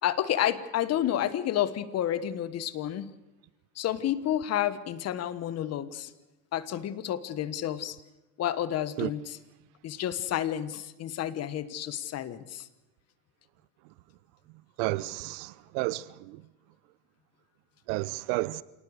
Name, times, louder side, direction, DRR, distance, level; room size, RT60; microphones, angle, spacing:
voice 1, 0.0-3.1 3.8-6.1 6.5-8.0 8.4-9.4 9.8-12.7, left 11 dB, 35° left, 1.3 m, -30 dB
voice 2, 14.8-16.0 17.9-18.6, right 20 dB, 55° right, 0.8 m, -31 dB
27.5 x 19.0 x 6.6 m
supercardioid pair, 120°, 43 cm